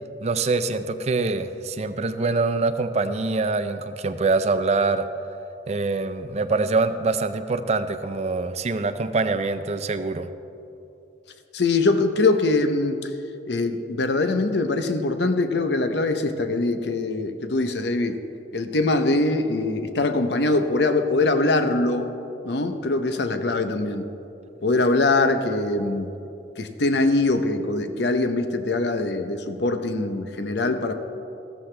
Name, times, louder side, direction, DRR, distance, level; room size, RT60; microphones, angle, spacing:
voice 1, 0.2-5.1 5.7-10.3, right 3 dB, 35° right, 11 dB, 0.4 m, -24 dB
voice 2, 11.5-13.1 13.5-18.2 18.5-22.1 22.4-24.1 24.6-26.1 26.6-30.9, left 2 dB, 65° left, 8 dB, 0.8 m, -23 dB
15.0 x 13.5 x 3.3 m, 2.8 s
head